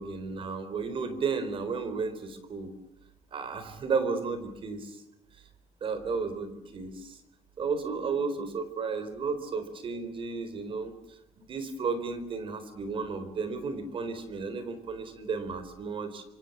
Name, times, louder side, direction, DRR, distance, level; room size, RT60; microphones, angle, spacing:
voice 1, 0.0-2.7 3.3-4.9 5.8-7.2 7.6-11.2 11.5-16.2, right 4 dB, 45° right, 11 dB, 4.0 m, -33 dB
27.0 x 26.0 x 7.3 m, 0.84 s
cardioid pair, 145°, 13 cm